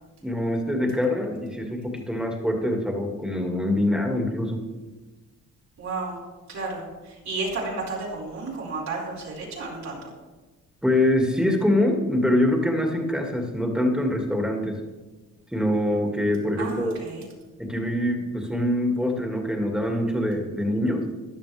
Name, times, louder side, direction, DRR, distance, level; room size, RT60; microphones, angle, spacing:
voice 1, 0.2-4.6 10.8-14.8 15.5-17.0 17.6-21.1, left 1 dB, 5° right, 2 dB, 2.2 m, -24 dB
voice 2, 5.8-6.2 6.5-10.1 16.6-17.2, right 3 dB, 65° right, -3 dB, 4.9 m, -32 dB
15.5 x 11.0 x 3.5 m, 1.2 s
cardioid pair, 90°, 30 cm